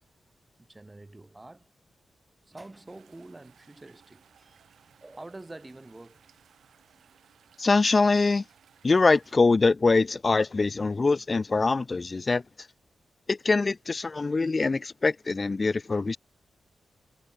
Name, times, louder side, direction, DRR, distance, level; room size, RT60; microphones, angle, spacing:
voice 1, 0.6-1.7 2.5-4.6 5.0-6.2 6.9-7.1, right 2 dB, 20° right, 3.7 m, -46 dB
sound 1, 2.9-9.4, right 8 dB, 80° right, 5.7 m, -61 dB
voice 2, 7.6-8.4 8.8-12.4 13.3-16.2, left 3 dB, 35° left, 1.0 m, -23 dB
cardioid pair, 80°, 0 cm